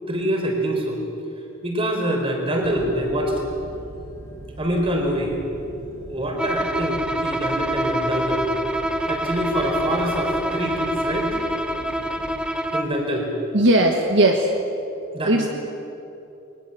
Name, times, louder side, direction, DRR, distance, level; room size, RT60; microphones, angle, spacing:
voice 1, 0.1-1.0 1.6-3.4 4.6-5.4 6.0-8.5 9.1-11.4 12.7-13.3 15.1-15.5, equal, 25° right, 1 dB, 4.2 m, -25 dB
sound 1, 2.6-12.5, right 1 dB, 90° right, 6.6 m, -41 dB
Bowed string instrument, 6.4-13.0, right 1 dB, 5° right, 1.0 m, -26 dB
voice 2, 13.5-14.5 15.2-15.5, right 1 dB, 60° right, 2 dB, 1.5 m, -17 dB
22.5 x 20.0 x 7.9 m, 2.9 s
head